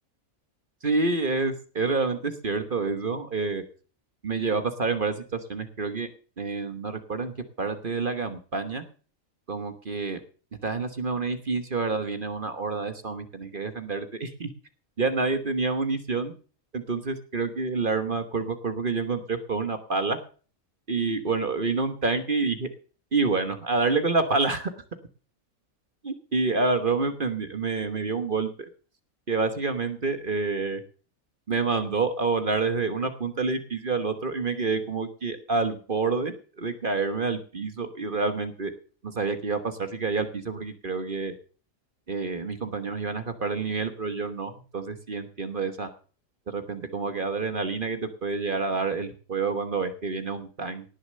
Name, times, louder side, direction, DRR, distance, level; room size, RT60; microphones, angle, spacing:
voice 1, 0.8-3.6 4.2-6.1 6.4-8.8 9.5-10.2 10.6-14.5 15.0-16.3 16.7-20.2 20.9-22.7 23.1-24.7 26.0-28.5 29.3-30.8 31.5-38.7 39.0-41.3 42.1-45.9 46.5-50.8, right 4 dB, 40° right, 9 dB, 1.3 m, -28 dB
18.0 x 6.7 x 6.6 m, 0.40 s
omnidirectional pair, 1.4 m